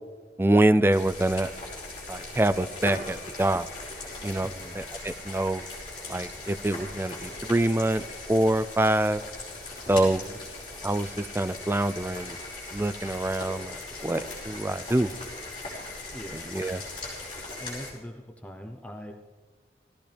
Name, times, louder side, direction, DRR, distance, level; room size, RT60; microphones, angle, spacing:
voice 1, 0.4-1.5 2.1-3.7 4.2-4.5 4.7-5.6 6.1-8.0 8.3-9.2 9.9-10.2 10.8-12.4 12.7-15.1 16.3-16.8, right 1 dB, 15° right, 14 dB, 0.3 m, -25 dB
sound 1, 0.9-17.9, left 2 dB, 30° left, 5.3 m, -39 dB
voice 2, 4.4-4.8 9.9-10.4 16.1-16.5 17.6-19.1, equal, 10° left, 4 dB, 0.7 m, -42 dB
18.0 x 15.0 x 3.4 m, 1.5 s
head